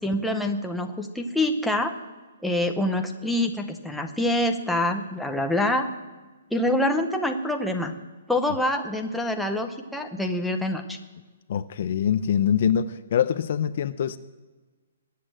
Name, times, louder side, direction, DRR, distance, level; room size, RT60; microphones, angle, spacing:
voice 1, 0.0-2.0 2.4-5.9 6.5-7.9 8.3-11.0, left 1 dB, ahead, 0.7 m, -26 dB
voice 2, 11.5-14.2, left 8 dB, 40° left, 0.5 m, -24 dB
21.0 x 8.4 x 7.6 m
hypercardioid pair, 175°, 0 cm